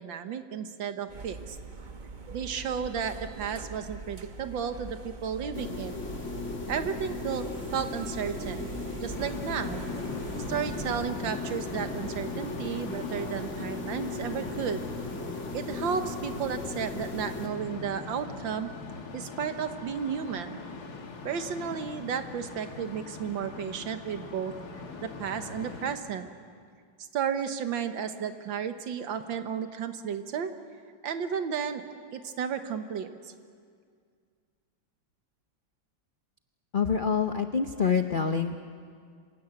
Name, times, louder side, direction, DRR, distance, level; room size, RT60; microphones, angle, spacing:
voice 1, 0.0-1.6 2.3-5.9 6.7-8.7 9.0-9.8 10.5-14.8 15.5-18.7 19.1-20.6 21.3-24.5 25.0-26.3 27.1-30.5 31.0-31.8 32.1-33.3, right 7 dB, 75° right, 8 dB, 1.9 m, -33 dB
sound 1, 1.1-11.0, right 3 dB, 30° right, 0.9 m, -43 dB
sound 2, 5.5-17.5, left 3 dB, 35° left, 2.7 m, -37 dB
sound 3, 9.1-26.0, left 4 dB, 55° left, 2.1 m, -42 dB
voice 2, 36.7-38.6, left 6 dB, 75° left, 7 dB, 0.4 m, -26 dB
26.0 x 16.5 x 9.5 m, 2.1 s
omnidirectional pair, 2.1 m